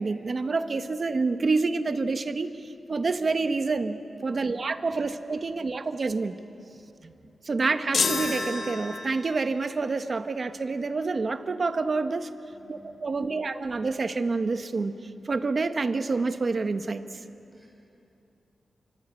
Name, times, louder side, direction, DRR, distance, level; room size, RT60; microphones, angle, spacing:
voice 1, 0.0-2.5 2.9-6.4 7.0-7.1 7.4-12.3 12.7-14.9 15.2-17.0, right 3 dB, 40° right, 9 dB, 1.1 m, -28 dB
sound 1, 7.9-9.4, left 4 dB, 60° left, 1.6 m, -28 dB
voice 2, 12.5-13.3 17.5-17.7, right 2 dB, ahead, -2 dB, 7.1 m, -54 dB
28.0 x 25.0 x 8.3 m, 2.7 s
wide cardioid pair, 165°, 0 cm